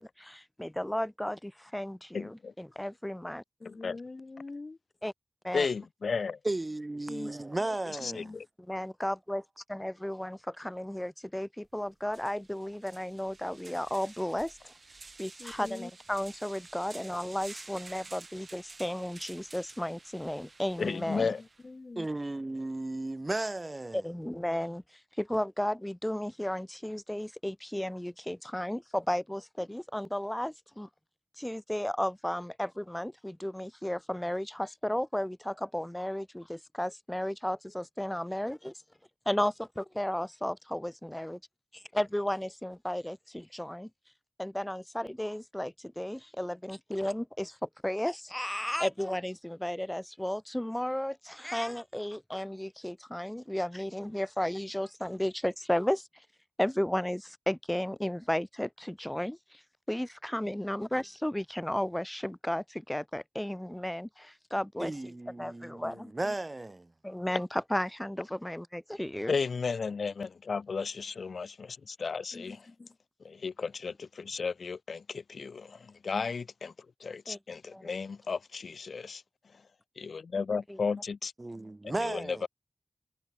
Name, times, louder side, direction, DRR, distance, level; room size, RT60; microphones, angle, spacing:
voice 1, 0.0-3.4 5.0-5.1 5.4-5.7 8.7-9.4 9.7-14.7 15.2-21.3 23.9-24.8 25.2-30.9 31.4-38.7 39.2-41.4 41.7-43.9 44.4-56.1 56.6-59.6 59.9-64.9 65.4-66.1 67.0-69.3 77.3-77.4 77.7-77.9 80.7-80.8, left 1 dB, 10° left, 1.3 m, -34 dB
voice 2, 2.1-2.5 3.6-4.0 5.5-6.4 8.0-8.4 20.8-21.4 69.3-72.6 73.2-76.7 77.0-79.2 80.0-81.3 81.8-82.5, left 5 dB, 75° left, 1.4 m, -34 dB
voice 3, 3.6-4.8 7.1-7.3 7.6-8.4 15.4-15.9 21.1-22.1 65.8-66.3 72.3-72.9, left 3 dB, 50° left, 4.8 m, -45 dB
voice 4, 6.4-8.4 22.0-24.1 64.8-66.9 81.4-82.5, right 2 dB, 30° right, 2.5 m, -35 dB
sound 1, 11.6-11.7 12.1-21.7, right 3 dB, 55° right, 7.3 m, -51 dB
cardioid pair, 45°, 0 cm